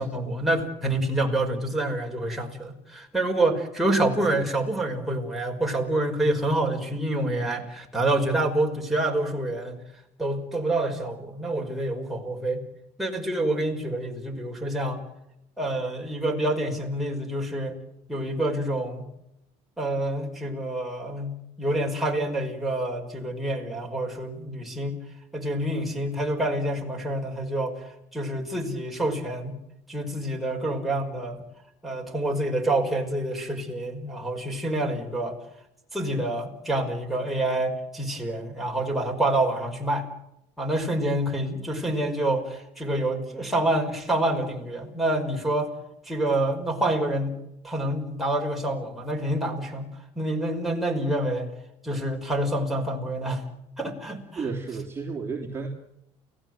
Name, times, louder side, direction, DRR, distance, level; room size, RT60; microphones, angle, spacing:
voice 1, 0.0-9.8 10.2-12.6 13.0-15.0 15.6-17.8 18.1-19.1 19.8-25.0 25.3-29.5 29.9-31.4 31.8-35.4 35.9-40.1 40.6-45.7 46.1-47.3 47.6-49.9 50.2-51.5 51.8-53.5 53.8-54.5, right 1 dB, ahead, -1 dB, 5.2 m, -27 dB
voice 2, 54.4-55.7, right 4 dB, 20° right, -2 dB, 3.4 m, -32 dB
29.5 x 17.0 x 7.9 m, 0.83 s
cardioid pair, 125°, 14 cm